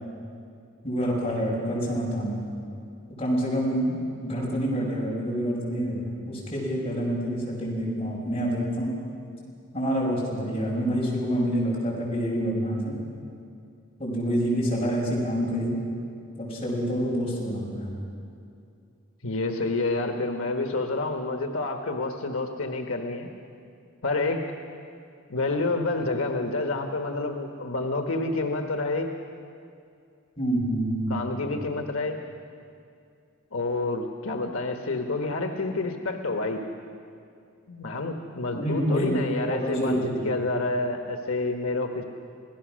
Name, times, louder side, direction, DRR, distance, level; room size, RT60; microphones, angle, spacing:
voice 1, 0.8-2.4 3.2-8.9 9.7-12.9 14.0-15.8 16.4-17.9 30.4-31.2 38.5-40.3, equal, 30° left, -4 dB, 6.3 m, -27 dB
voice 2, 19.2-23.3 24.0-24.4 25.3-29.1 31.1-32.2 33.5-36.6 37.7-40.0 40.2-42.0, left 2 dB, 85° left, 4 dB, 1.3 m, -28 dB
26.5 x 17.0 x 6.3 m, 2.4 s
head